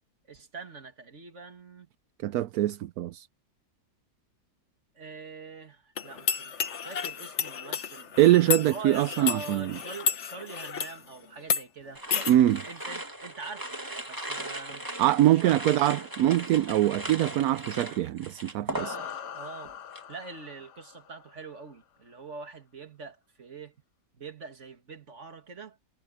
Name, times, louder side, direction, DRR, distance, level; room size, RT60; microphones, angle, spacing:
voice 1, 0.3-1.9 5.0-8.2 8.7-12.0 12.6-13.8 14.1-15.6 18.7-19.7 20.1-23.7 24.1-25.8, right 4 dB, 45° right, 2.4 m, -44 dB
voice 2, 2.2-3.3 8.2-9.7 12.3-12.6 15.0-18.9, right 13 dB, 70° right, 1.0 m, -23 dB
sound 1, 6.0-11.0 11.4-11.6 12.1-12.3, left 7 dB, 50° left, 1.2 m, -31 dB
sound 2, 11.9-19.4 19.6-20.1, right 1 dB, 10° right, 1.9 m, -38 dB
sound 3, 18.7-21.5, left 9 dB, 80° left, 1.7 m, -42 dB
omnidirectional pair, 1.8 m